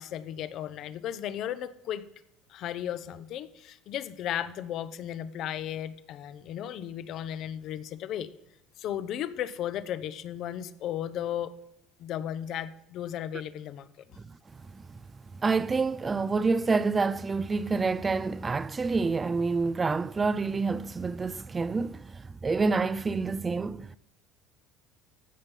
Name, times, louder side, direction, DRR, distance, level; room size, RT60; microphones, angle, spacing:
voice 1, 0.0-2.0 2.5-8.3 8.8-11.5 12.0-13.9, left 10 dB, 55° left, 0.7 m, -35 dB
voice 2, 15.4-24.0, right 4 dB, 25° right, 0.3 m, -28 dB
15.0 x 5.5 x 5.4 m
supercardioid pair, 90°, 0 cm